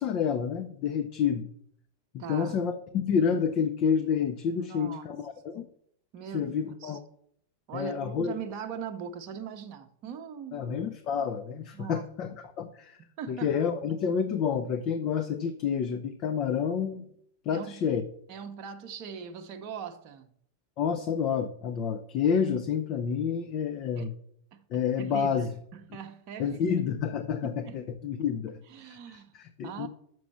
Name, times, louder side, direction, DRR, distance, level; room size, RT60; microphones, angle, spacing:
voice 1, 0.0-1.5 2.1-5.7 6.3-7.0 7.7-8.3 10.5-13.0 13.3-17.0 17.5-18.0 20.8-24.1 24.7-25.5 26.4-28.6 29.3-29.9, left 7 dB, 40° left, 0.6 m, -29 dB
voice 2, 2.2-2.6 4.6-5.1 6.1-7.0 7.7-10.8 11.7-12.1 13.2-13.6 17.5-17.8 18.3-20.3 24.0-24.1 24.5-24.6 25.0-26.8 27.4-27.8 28.7-29.3 29.6-29.9, right 7 dB, 40° right, 0.8 m, -41 dB
6.2 x 6.0 x 7.0 m
figure-of-eight pair, 90°, 0 cm